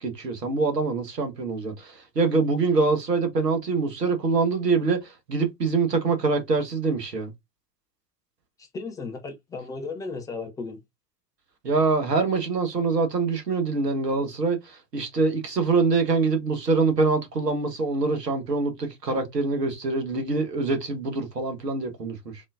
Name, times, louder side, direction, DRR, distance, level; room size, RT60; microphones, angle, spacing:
voice 1, 0.0-7.3 11.6-22.4, right 4 dB, 80° right, 1.4 m, -24 dB
voice 2, 8.6-10.8, left 4 dB, 10° left, 0.3 m, -35 dB
4.2 x 3.6 x 2.4 m
figure-of-eight pair, 85°, 48 cm